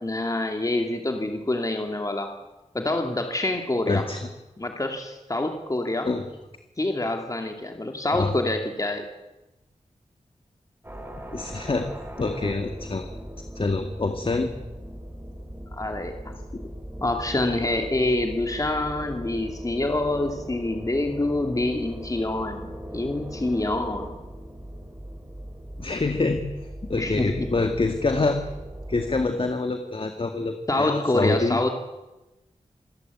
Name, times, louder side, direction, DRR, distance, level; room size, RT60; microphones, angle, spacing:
voice 1, 0.0-2.3 2.7-4.0 4.6-6.1 6.8-9.0 15.7-16.2 17.0-24.2 27.0-27.5 30.7-31.7, left 2 dB, 30° left, 4 dB, 2.5 m, -26 dB
voice 2, 3.9-4.3 6.0-6.3 8.1-8.4 11.3-13.1 13.6-14.5 16.5-16.6 25.8-28.4 28.9-31.6, left 3 dB, 45° left, 6 dB, 2.1 m, -26 dB
sound 1, 10.8-29.3, equal, 20° right, 5.5 m, -39 dB
27.5 x 16.5 x 9.4 m, 1.0 s
wide cardioid pair, 75°, 13 cm